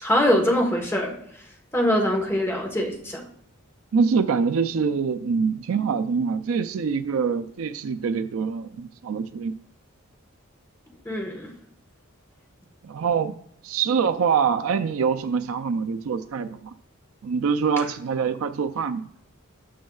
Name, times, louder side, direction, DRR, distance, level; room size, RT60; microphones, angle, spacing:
voice 1, 0.0-1.1 1.7-3.2 11.0-11.5, left 1 dB, 10° left, 1 dB, 1.2 m, -23 dB
voice 2, 3.9-9.6 12.8-13.3 13.6-16.7 17.2-19.1, right 6 dB, 70° right, 9 dB, 0.4 m, -24 dB
12.5 x 6.3 x 2.3 m, 0.70 s
head